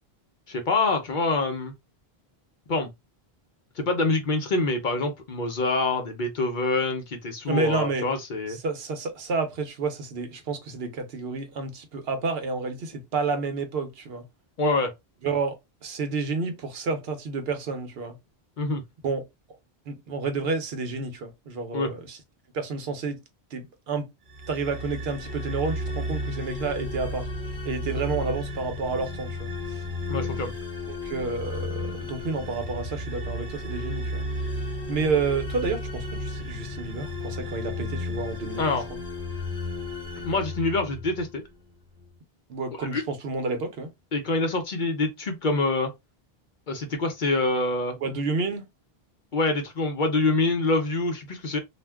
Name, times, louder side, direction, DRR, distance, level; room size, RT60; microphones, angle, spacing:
voice 1, 0.5-1.7 2.7-2.9 3.8-8.6 14.6-14.9 18.6-18.8 21.7-21.9 30.1-30.5 38.6-38.9 40.2-41.4 42.9-43.0 44.1-45.9 46.7-48.0 49.3-51.6, left 3 dB, 55° left, 0.8 m, -25 dB
voice 2, 7.5-8.1 8.6-14.2 15.2-18.2 19.0-19.2 19.9-22.2 22.5-23.2 23.5-24.1 24.5-27.3 27.6-29.8 30.9-34.2 34.9-38.8 42.5-43.9 48.0-48.7, right 4 dB, 70° right, 0.9 m, -30 dB
sound 1, 24.3-41.4, left 2 dB, 25° right, 1.2 m, -33 dB
2.4 x 2.1 x 3.3 m
omnidirectional pair, 1.0 m